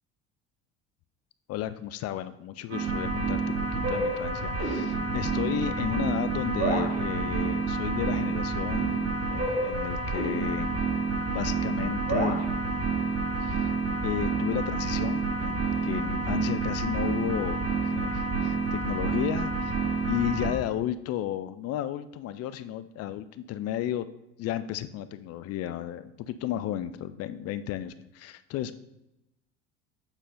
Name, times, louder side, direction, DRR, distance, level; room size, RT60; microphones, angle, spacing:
voice 1, 1.5-10.8 11.3-12.5 13.4-19.8 20.1-24.1 24.4-28.7, left 11 dB, 45° left, 13 dB, 0.5 m, -33 dB
sound 1, 2.7-20.5, right 4 dB, 55° right, 2.5 m, -28 dB
8.1 x 4.0 x 3.8 m, 0.89 s
hypercardioid pair, 80°, 34 cm